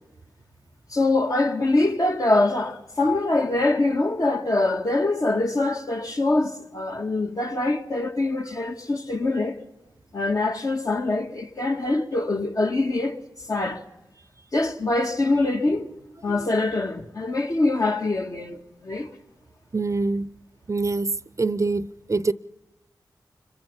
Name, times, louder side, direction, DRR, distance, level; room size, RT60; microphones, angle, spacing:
voice 1, 0.9-9.6 10.1-13.2 13.5-13.8 14.5-15.9 16.2-19.1, left 2 dB, 50° left, 1.9 m, -24 dB
voice 2, 19.7-20.3 20.7-22.3, right 3 dB, 40° right, 0.6 m, -25 dB
25.5 x 22.0 x 5.5 m
cardioid pair, 55°, 8 cm